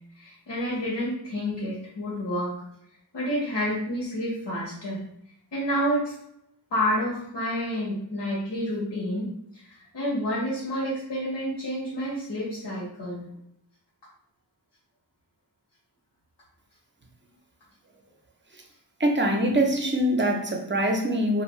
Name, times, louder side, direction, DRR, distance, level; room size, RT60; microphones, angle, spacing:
voice 1, 0.1-2.5 3.1-5.0 5.5-6.1 6.7-9.3 9.5-13.3, equal, 75° left, -8 dB, 1.2 m, -29 dB
voice 2, 19.0-21.4, right 1 dB, 30° right, 2 dB, 0.5 m, -23 dB
2.6 x 2.5 x 3.1 m, 0.73 s
wide cardioid pair, 90°, 41 cm